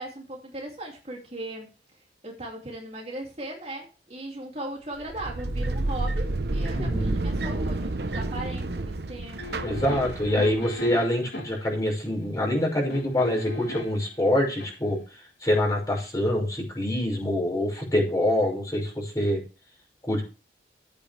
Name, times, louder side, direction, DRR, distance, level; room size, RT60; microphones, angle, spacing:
voice 1, 0.0-1.7 2.2-9.6, right 1 dB, 35° right, -1 dB, 2.7 m, -38 dB
sound 1, 5.0-10.6, right 2 dB, 65° right, 0.9 m, -29 dB
voice 2, 6.7-7.2 9.6-15.0 15.4-19.4 20.1-20.2, left 1 dB, 20° left, -1 dB, 5.5 m, -25 dB
sound 2, 9.4-11.7 12.9-14.1 14.5-14.7, left 2 dB, 70° left, 3.4 m, -37 dB
14.0 x 8.8 x 3.4 m, 0.33 s
head